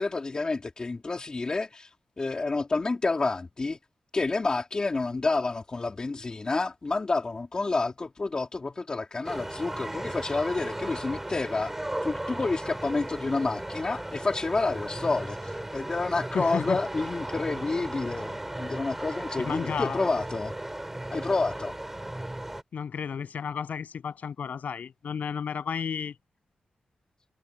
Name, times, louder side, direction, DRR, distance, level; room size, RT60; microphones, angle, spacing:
voice 1, 0.0-1.9 2.2-3.8 4.1-11.7 12.0-20.5 21.1-21.7, left 3 dB, 30° left, 2.7 m, -29 dB
sound 1, 9.2-22.6, right 1 dB, 10° right, 5.7 m, -36 dB
voice 2, 16.3-16.8 19.4-20.0 22.7-26.2, left 7 dB, 75° left, 7.3 m, -32 dB
wide cardioid pair, 160°, 3 cm